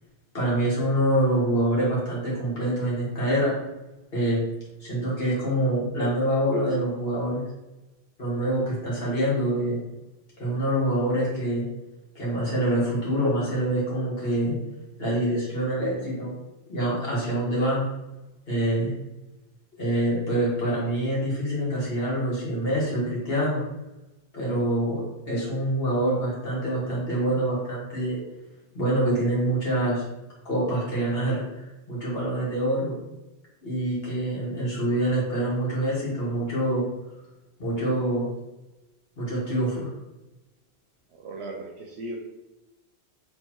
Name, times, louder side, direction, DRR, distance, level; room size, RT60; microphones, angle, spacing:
voice 1, 0.3-3.5 4.1-4.4 4.8-7.4 8.2-9.8 10.4-11.7 12.2-14.6 15.0-16.3 16.7-17.9 18.5-19.0 19.8-23.6 24.3-28.2 28.7-30.0 30.5-33.0 33.6-36.8 37.6-38.3 39.2-39.9, right 1 dB, 60° left, -6 dB, 1.8 m, -25 dB
voice 2, 41.1-42.2, right 2 dB, 80° right, 0 dB, 0.9 m, -37 dB
4.4 x 3.3 x 2.9 m, 0.99 s
omnidirectional pair, 1.1 m